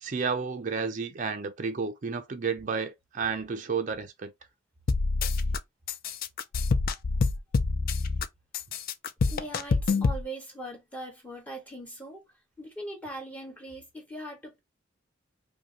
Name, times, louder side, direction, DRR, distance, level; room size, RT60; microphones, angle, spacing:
voice 1, 0.0-4.3, right 5 dB, 40° right, 0.5 m, -31 dB
sound 1, 4.9-5.6 5.9-8.2 8.5-10.2, left 4 dB, 50° left, 0.4 m, -26 dB
voice 2, 9.3-12.2 12.6-14.6, right 1 dB, 10° left, 1.4 m, -40 dB
5.1 x 2.2 x 2.8 m
head